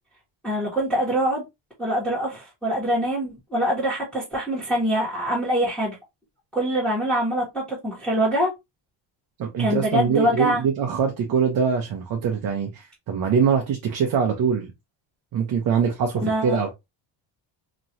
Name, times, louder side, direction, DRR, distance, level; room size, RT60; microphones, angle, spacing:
voice 1, 0.4-1.4 1.8-5.9 6.5-8.5 9.6-10.6 16.2-16.6, equal, ahead, 1.5 m, -24 dB
voice 2, 9.4-14.7 15.3-16.7, right 6 dB, 45° right, 0.7 m, -23 dB
3.0 x 2.9 x 2.6 m
cardioid pair, 145°, 47 cm